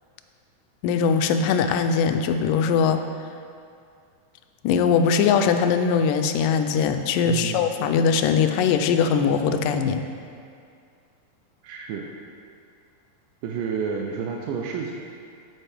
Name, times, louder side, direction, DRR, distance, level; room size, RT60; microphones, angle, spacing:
voice 1, 0.8-3.0 4.6-10.0, left 6 dB, 80° left, 7 dB, 2.1 m, -21 dB
voice 2, 7.2-7.7 11.6-12.1 13.4-14.9, right 6 dB, 80° right, 0 dB, 2.2 m, -30 dB
8.7 x 8.1 x 3.4 m, 2.3 s
omnidirectional pair, 3.9 m